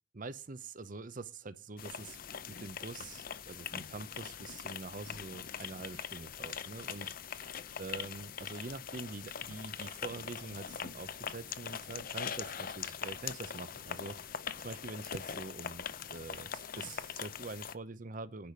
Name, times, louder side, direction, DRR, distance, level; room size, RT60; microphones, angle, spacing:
voice 1, 0.1-2.2 2.5-14.3 14.6-18.5, right 3 dB, 50° right, 0.8 m, -45 dB
sound 1, 1.8-17.7, left 8 dB, 50° left, 0.6 m, -42 dB
10.5 x 4.9 x 7.1 m
head